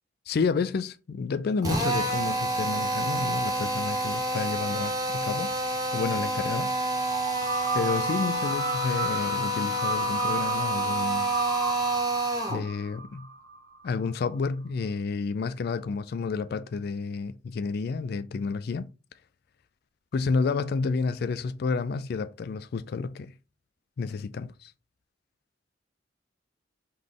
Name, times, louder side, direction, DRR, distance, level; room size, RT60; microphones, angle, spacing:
voice 1, 0.3-5.5 5.9-6.7 7.7-11.3 12.5-13.3 13.8-18.9 20.1-23.3 24.0-24.7, left 4 dB, 50° left, 0.3 m, -30 dB
Drill, 1.6-12.6, right 1 dB, 20° right, 0.9 m, -28 dB
sound 1, 7.1-13.9, right 4 dB, 75° right, 0.7 m, -34 dB
3.9 x 3.2 x 3.6 m
head